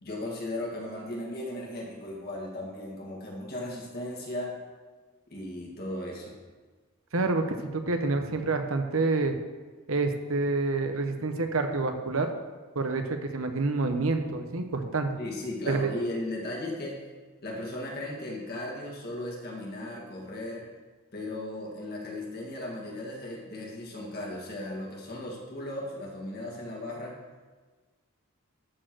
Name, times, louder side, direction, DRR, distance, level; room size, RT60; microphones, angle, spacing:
voice 1, 0.0-4.6 5.3-6.4 15.2-17.0 17.4-20.6 21.1-27.2, left 1 dB, 45° left, -2 dB, 2.1 m, -36 dB
voice 2, 7.1-9.4 9.9-12.3 12.7-15.2 15.7-15.9, right 3 dB, 70° right, 6 dB, 0.9 m, -28 dB
12.5 x 4.6 x 6.2 m, 1.4 s
head